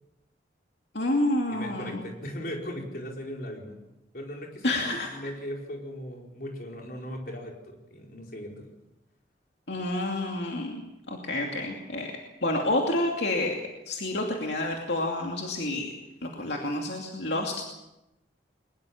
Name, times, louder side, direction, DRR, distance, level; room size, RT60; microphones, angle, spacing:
voice 1, 0.9-2.0 4.6-5.3 9.7-10.8 11.1-12.1 12.4-13.6 13.9-15.9 16.2-17.5, left 1 dB, 70° left, 1 dB, 2.6 m, -29 dB
voice 2, 1.5-3.8 4.1-8.7, equal, 50° left, 0 dB, 4.8 m, -38 dB
22.5 x 21.0 x 7.2 m, 0.94 s
head